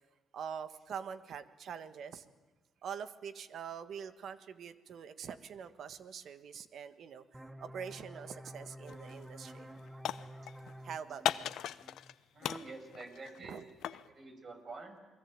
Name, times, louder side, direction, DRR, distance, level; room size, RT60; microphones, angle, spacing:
voice 1, 0.3-2.2 2.8-9.7 10.8-11.4 13.4-13.6, right 7 dB, 65° right, 12 dB, 1.6 m, -44 dB
sound 1, 7.3-12.7, equal, 10° right, 1.1 m, -50 dB
sound 2, 8.9-9.2 9.5-10.7 11.2-12.1 12.4-14.1, left 11 dB, 80° left, 0.8 m, -37 dB
voice 2, 12.3-13.7 14.1-15.0, right 3 dB, 45° right, 6 dB, 6.0 m, -48 dB
29.0 x 21.0 x 8.9 m, 1.3 s
cardioid pair, 90°, 0 cm